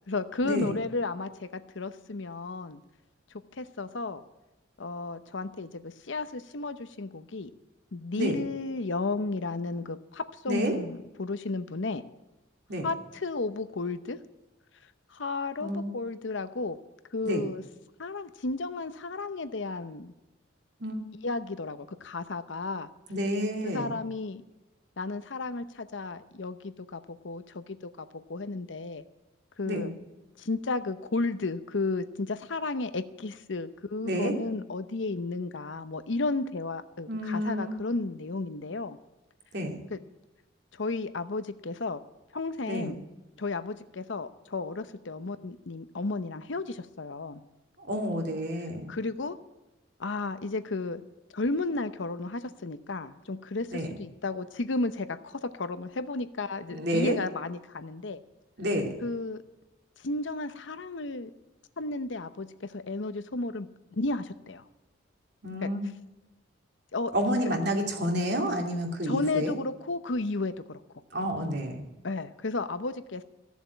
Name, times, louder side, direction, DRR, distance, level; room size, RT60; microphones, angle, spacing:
voice 1, 0.1-1.5 1.7-2.8 3.6-4.2 4.8-7.5 7.9-12.0 12.8-14.2 15.1-16.8 17.1-17.6 18.0-20.1 21.2-22.9 23.6-24.4 25.0-29.0 29.6-29.9 30.4-39.0 39.9-40.0 40.7-42.0 42.3-43.0 43.4-47.4 48.9-49.4 50.0-51.0 51.3-58.2 59.0-59.4 60.0-61.3 61.8-64.6 65.6-65.7 66.9-67.1 67.4-67.6 69.0-70.8 72.0-73.2, left 3 dB, 70° left, 11 dB, 0.8 m, -33 dB
voice 2, 10.5-10.8 12.7-12.9 15.6-15.8 17.2-17.5 20.8-21.0 23.1-24.0 29.6-30.0 34.0-34.4 37.1-37.7 39.5-39.8 42.7-43.0 47.8-48.9 53.7-53.9 56.7-57.2 58.6-58.9 65.4-65.8 67.1-69.5 71.1-71.9, equal, 60° right, 2 dB, 2.6 m, -29 dB
15.0 x 7.2 x 9.3 m, 1.0 s
head